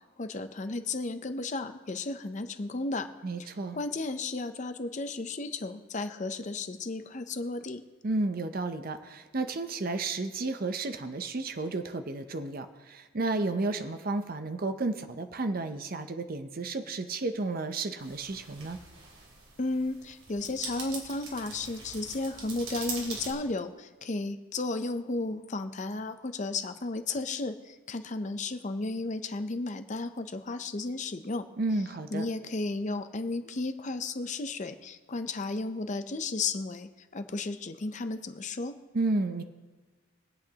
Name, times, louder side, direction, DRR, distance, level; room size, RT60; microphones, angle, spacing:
voice 1, 0.2-3.1 3.4-3.5 3.7-7.8 19.6-31.4 32.1-38.8, left 3 dB, 35° left, 9 dB, 0.5 m, -34 dB
voice 2, 3.2-3.8 8.0-18.8 31.6-32.2 38.9-39.4, right 2 dB, 45° right, 8 dB, 0.6 m, -32 dB
sound 1, 18.0-23.3, right 3 dB, 80° right, 3.1 m, -42 dB
23.5 x 8.2 x 2.9 m, 1.3 s
head